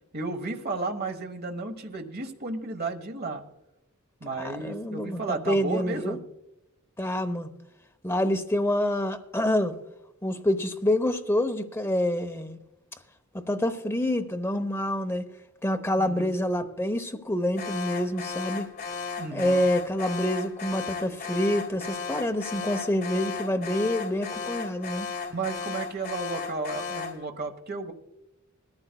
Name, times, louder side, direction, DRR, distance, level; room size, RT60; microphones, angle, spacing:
voice 1, 0.1-3.4 4.2-6.2 16.0-16.3 19.2-19.6 25.3-27.9, right 3 dB, 50° right, 1.2 m, -33 dB
voice 2, 4.6-6.2 7.0-7.5 8.0-9.7 10.2-12.6 13.5-15.3 15.6-18.7 19.3-25.1, left 1 dB, 10° left, 0.8 m, -27 dB
Alarm, 17.6-27.2, left 5 dB, 50° left, 1.6 m, -35 dB
21.0 x 14.0 x 2.3 m
head